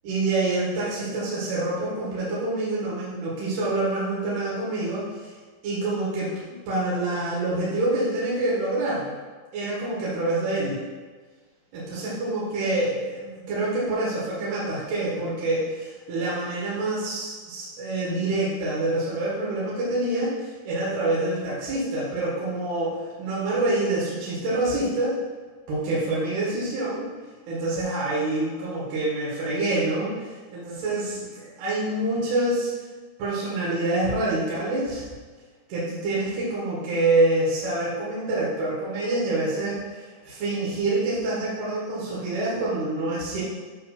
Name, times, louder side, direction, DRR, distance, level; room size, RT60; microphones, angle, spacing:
voice 1, 0.0-5.3 5.6-9.2 9.5-10.8 11.7-25.2 25.7-27.1 27.5-32.7 33.2-35.1 35.7-43.4, right 2 dB, 65° right, -7 dB, 3.3 m, -26 dB
8.1 x 3.3 x 5.8 m, 1.4 s
omnidirectional pair, 5.1 m